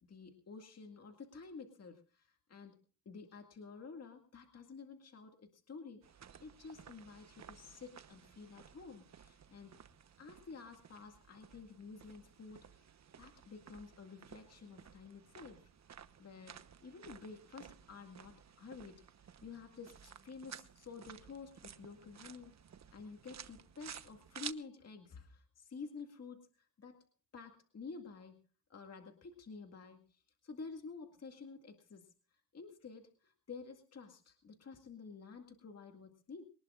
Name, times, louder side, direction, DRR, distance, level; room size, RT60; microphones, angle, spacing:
voice 1, 0.0-2.8 3.1-6.0 6.4-9.7 10.2-12.8 13.2-15.7 16.2-22.5 22.9-27.1 27.3-28.4 28.7-36.4, left 4 dB, 35° left, 4 dB, 2.1 m, -51 dB
sound 1, 6.0-24.5, right 8 dB, 35° right, 1.1 m, -55 dB
23.5 x 19.5 x 2.5 m, 0.37 s
cardioid pair, 105°, 44 cm